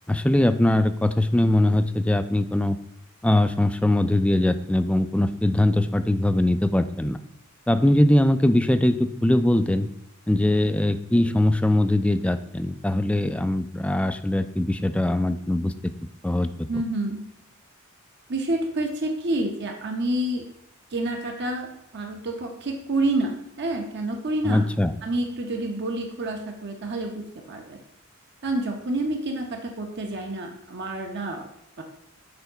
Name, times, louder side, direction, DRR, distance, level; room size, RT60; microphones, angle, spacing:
voice 1, 0.1-2.8 3.2-7.2 7.7-9.9 10.3-15.9 16.2-16.5 24.4-24.9, left 1 dB, 5° left, 10 dB, 0.3 m, -21 dB
voice 2, 16.7-17.2 18.3-20.4 20.9-21.7 21.9-23.3 23.6-24.6 25.0-27.8 28.4-31.5 31.8-31.9, right 1 dB, 55° right, 3 dB, 0.8 m, -28 dB
7.0 x 3.8 x 5.5 m, 0.78 s
head